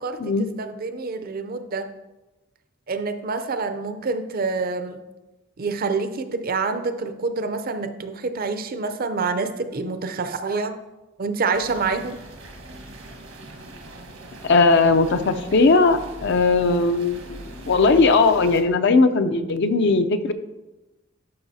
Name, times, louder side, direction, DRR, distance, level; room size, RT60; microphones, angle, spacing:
voice 1, 0.0-1.9 2.9-5.0 5.6-10.7 11.2-12.2, right 4 dB, 50° right, 9 dB, 0.6 m, -27 dB
sound 1, 11.5-18.6, right 1 dB, 80° right, 1.5 m, -41 dB
voice 2, 14.4-20.3, left 3 dB, 60° left, 9 dB, 0.5 m, -18 dB
12.0 x 5.7 x 2.7 m, 1.1 s
head